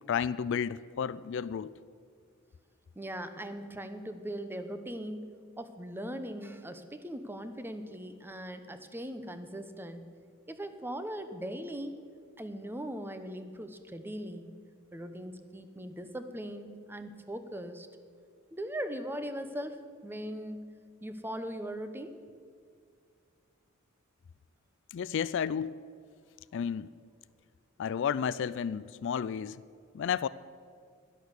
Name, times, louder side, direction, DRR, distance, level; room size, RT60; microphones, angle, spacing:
voice 1, 0.1-1.7 24.9-25.8 26.5-26.9 27.8-29.6 29.9-30.3, left 7 dB, 60° left, 17 dB, 0.3 m, -32 dB
voice 2, 3.0-10.1 10.5-12.0 12.4-14.6 14.9-17.9 18.5-20.7 21.0-22.2, equal, 10° right, 9 dB, 0.8 m, -40 dB
11.5 x 11.0 x 8.1 m, 2.2 s
head